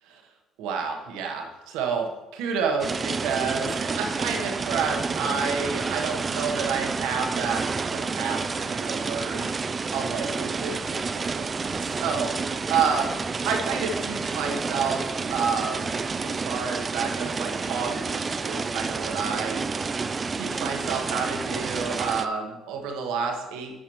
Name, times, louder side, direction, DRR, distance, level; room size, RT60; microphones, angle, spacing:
voice 1, 0.6-9.5 9.9-11.0 11.3-11.4 12.0-13.1 13.4-15.9 16.2-19.6 20.4-23.8, right 5 dB, 80° right, 2 dB, 1.1 m, -29 dB
sound 1, 2.8-22.3, right 4 dB, 35° right, 0.4 m, -29 dB
10.5 x 5.0 x 3.0 m, 1.1 s
supercardioid pair, 70°, 0 cm